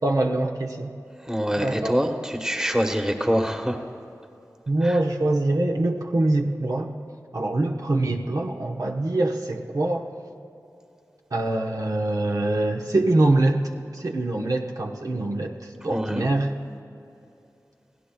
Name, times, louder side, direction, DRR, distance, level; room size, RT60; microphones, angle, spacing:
voice 1, 0.0-0.9 1.6-2.0 4.7-6.9 7.3-10.1 11.3-16.5, right 2 dB, 65° right, 1 dB, 1.0 m, -24 dB
voice 2, 1.2-3.8 4.8-5.0 15.9-16.3, equal, 10° right, 4 dB, 1.2 m, -25 dB
28.5 x 16.5 x 2.3 m, 2.8 s
wide cardioid pair, 60°, 6 cm